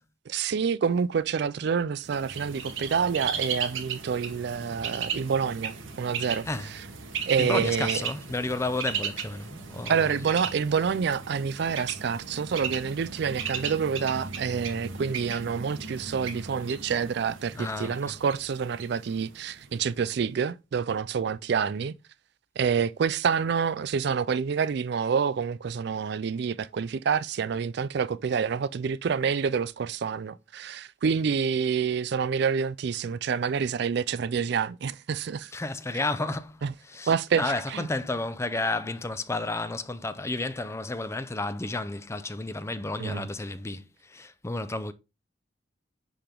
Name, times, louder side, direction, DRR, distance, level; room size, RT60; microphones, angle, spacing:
voice 1, 0.3-6.5 7.3-8.0 9.9-21.9 22.6-35.5 36.6-36.7 37.1-37.9 43.0-43.2, right 6 dB, 55° right, 0.4 m, -27 dB
Bird, 2.0-19.8, right 6 dB, 85° right, 1.2 m, -36 dB
voice 2, 7.4-10.2 17.5-18.1 35.5-44.9, left 2 dB, 15° left, 0.5 m, -32 dB
10.0 x 3.5 x 3.7 m
head